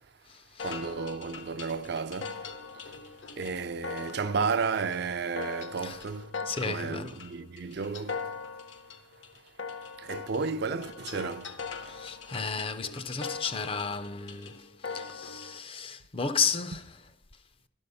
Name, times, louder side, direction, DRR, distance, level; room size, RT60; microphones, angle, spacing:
sound 1, 0.6-15.6, left 5 dB, 70° left, 0.8 m, -41 dB
voice 1, 0.6-2.4 3.4-6.3 6.6-8.2 10.0-11.6, right 5 dB, 55° right, 0.4 m, -32 dB
voice 2, 6.5-7.2 11.8-17.0, left 5 dB, 30° left, 0.4 m, -33 dB
11.5 x 5.4 x 6.7 m
head